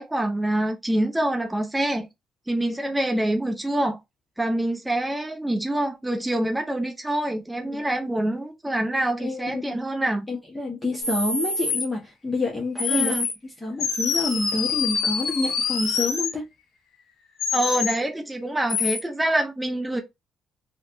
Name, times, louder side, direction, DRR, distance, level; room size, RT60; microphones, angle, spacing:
voice 1, 0.0-2.1 2.5-4.0 4.4-10.3 12.9-13.3 17.5-20.0, right 1 dB, 10° right, 0.8 m, -25 dB
voice 2, 9.2-9.8 10.3-13.1 13.6-16.5, left 2 dB, 10° left, 1.3 m, -28 dB
sound 1, 11.0-11.9 12.8-13.3 13.8-16.3 17.4-18.0 18.7-19.0, left 5 dB, 70° left, 1.4 m, -26 dB
3.2 x 3.1 x 2.7 m
cardioid pair, 90°, 0 cm